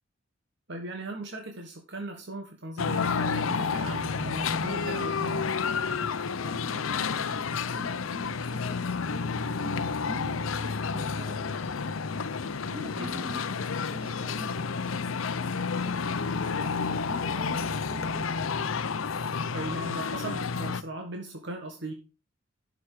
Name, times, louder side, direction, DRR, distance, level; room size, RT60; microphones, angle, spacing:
voice 1, 0.7-5.6 13.0-13.2 19.5-21.9, right 1 dB, 60° right, 3 dB, 1.5 m, -38 dB
sound 1, 2.8-20.8, left 5 dB, 85° left, 0.6 m, -30 dB
voice 2, 6.4-12.0 12.4-18.4, right 1 dB, 30° right, 1 dB, 3.1 m, -46 dB
12.0 x 6.0 x 4.8 m, 0.31 s
head